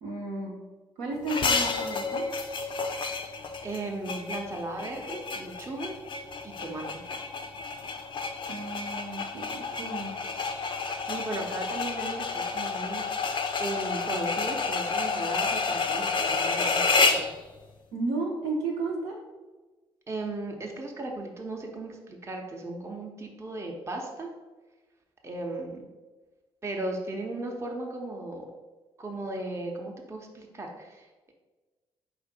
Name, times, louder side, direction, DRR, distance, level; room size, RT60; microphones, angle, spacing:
voice 1, 0.0-0.6 1.0-2.2 8.5-10.1 17.9-19.1, right 3 dB, 65° right, -2 dB, 0.8 m, -33 dB
sound 1, 1.3-17.3, left 4 dB, 40° left, 0.5 m, -30 dB
voice 2, 3.6-5.9 6.4-7.0 11.0-13.2 13.6-17.3 20.1-24.3 25.2-25.9 26.6-28.5 29.0-31.3, right 2 dB, 20° right, 1 dB, 0.7 m, -36 dB
4.7 x 2.5 x 4.0 m, 1.2 s
figure-of-eight pair, 40°, 12 cm